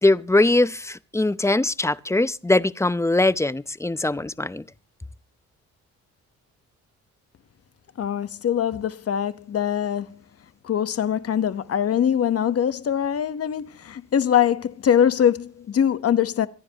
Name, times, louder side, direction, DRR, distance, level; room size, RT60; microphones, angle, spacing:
voice 1, 0.0-4.6, left 2 dB, 10° left, 0.7 m, -21 dB
voice 2, 8.0-10.2 10.6-16.5, left 9 dB, 50° left, 1.2 m, -22 dB
25.0 x 10.5 x 3.0 m
cardioid pair, 90°, 30 cm